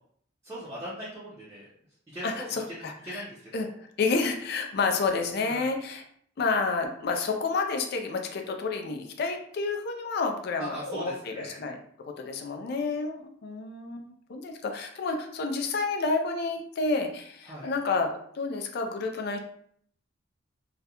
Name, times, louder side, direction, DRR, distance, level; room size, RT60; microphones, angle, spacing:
voice 1, 0.4-1.7 2.1-3.7 5.5-5.7 10.6-11.6 17.4-17.7, right 1 dB, 15° right, -9 dB, 0.5 m, -40 dB
voice 2, 2.2-3.2 3.5-6.0 6.4-11.8 12.1-18.1 18.3-19.4, left 4 dB, 55° left, 4 dB, 0.4 m, -30 dB
2.3 x 2.1 x 2.8 m, 0.63 s
head